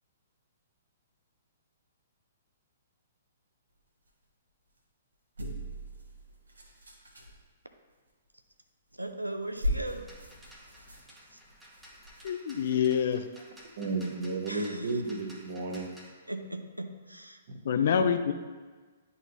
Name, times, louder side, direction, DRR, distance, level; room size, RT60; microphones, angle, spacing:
sound 1, 5.4-7.4 8.9-9.1 9.4-13.0 13.6-13.7, equal, 70° right, 1.3 m, -38 dB
voice 1, 8.9-10.2 10.8-11.4 14.5-15.0 16.3-17.4, right 1 dB, 85° right, 7 dB, 0.5 m, -39 dB
sound 2, 10.0-16.1, equal, 5° right, 1.1 m, -54 dB
voice 2, 12.2-13.2 17.6-18.3, left 7 dB, 50° left, 8 dB, 0.5 m, -26 dB
voice 3, 13.8-16.0 17.5-17.6, right 3 dB, 45° right, 2 dB, 1.1 m, -33 dB
10.5 x 4.1 x 2.9 m, 1.4 s
figure-of-eight pair, 120°, 0 cm